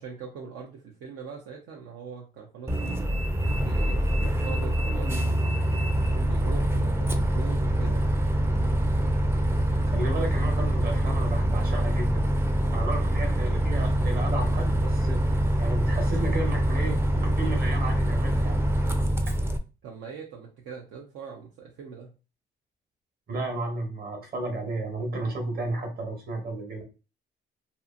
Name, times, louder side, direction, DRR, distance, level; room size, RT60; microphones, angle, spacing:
voice 1, 0.0-3.2 3.6-8.1 19.8-22.1, right 6 dB, 80° right, -2 dB, 0.6 m, -42 dB
Bus, 2.7-19.6, right 1 dB, 10° right, 0.4 m, -25 dB
voice 2, 9.9-12.3 12.7-18.7 23.3-26.8, right 2 dB, 50° right, 1 dB, 1.2 m, -33 dB
2.7 x 2.5 x 2.5 m, 0.31 s
cardioid pair, 90°, 20 cm